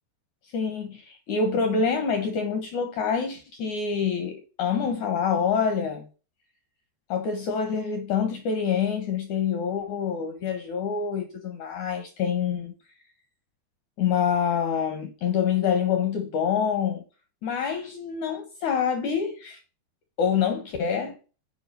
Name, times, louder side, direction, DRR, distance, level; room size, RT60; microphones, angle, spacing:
voice 1, 0.5-6.0 7.1-12.7 14.0-17.0 17.4-19.6 20.2-21.2, left 6 dB, 70° left, 1.9 m, -26 dB
7.9 x 5.0 x 6.7 m
omnidirectional pair, 4.9 m